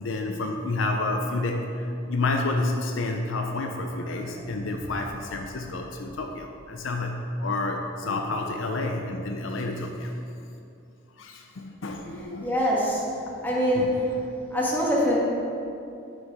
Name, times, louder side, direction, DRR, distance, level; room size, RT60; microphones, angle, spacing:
voice 1, 0.0-1.7 2.0-10.1 11.2-12.5 13.7-13.9, left 2 dB, 70° left, 3 dB, 0.6 m, -29 dB
voice 2, 12.4-13.0 13.4-14.1 14.5-15.2, equal, 10° left, -6 dB, 1.6 m, -24 dB
8.2 x 5.2 x 4.8 m, 2.6 s
head